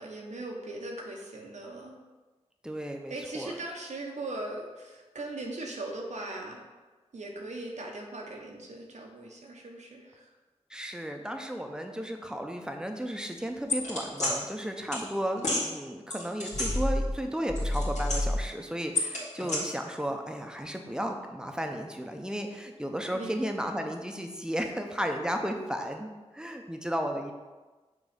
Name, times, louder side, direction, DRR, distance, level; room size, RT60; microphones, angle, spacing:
voice 1, 0.0-2.0 3.1-6.6 7.1-10.3 23.1-23.4, right 2 dB, 85° right, 0 dB, 0.9 m, -39 dB
voice 2, 2.6-3.5 10.7-27.3, equal, 5° right, 4 dB, 0.7 m, -34 dB
sound 1, 13.7-14.3 14.9-15.0 15.4-15.6 16.1-17.2 17.5-18.5 19.0-19.6, left 2 dB, 85° left, 1.9 m, -28 dB
6.0 x 3.1 x 5.1 m, 1.2 s
wide cardioid pair, 60°, 12 cm